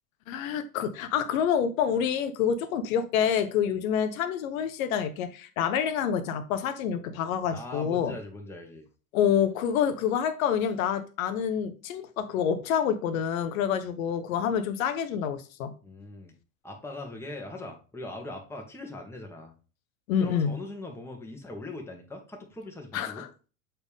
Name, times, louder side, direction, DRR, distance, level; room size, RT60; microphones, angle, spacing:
voice 1, 0.3-8.1 9.1-15.7 20.1-20.5 22.9-23.3, left 8 dB, 75° left, 0.9 m, -27 dB
voice 2, 7.5-8.9 15.8-16.3 16.6-19.5 20.2-23.2, left 2 dB, 5° left, 1.4 m, -40 dB
6.9 x 4.2 x 3.5 m
supercardioid pair, 120°, 42 cm